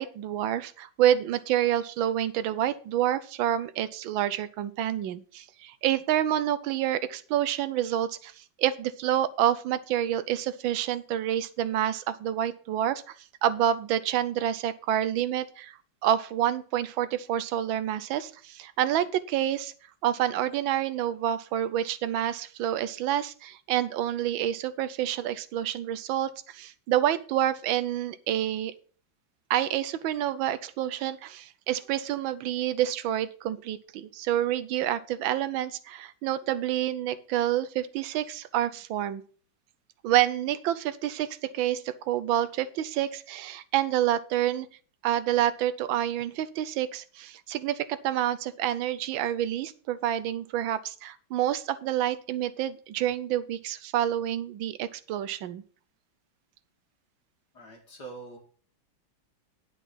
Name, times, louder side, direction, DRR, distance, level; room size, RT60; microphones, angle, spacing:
voice 1, 0.0-13.1 13.4-19.7 20.0-28.7 29.5-39.2 40.0-44.7 45.0-55.6, right 11 dB, 85° right, 14 dB, 1.5 m, -28 dB
voice 2, 57.5-58.4, right 4 dB, 55° left, 1 dB, 2.8 m, -44 dB
10.0 x 6.0 x 6.1 m, 0.42 s
omnidirectional pair, 2.1 m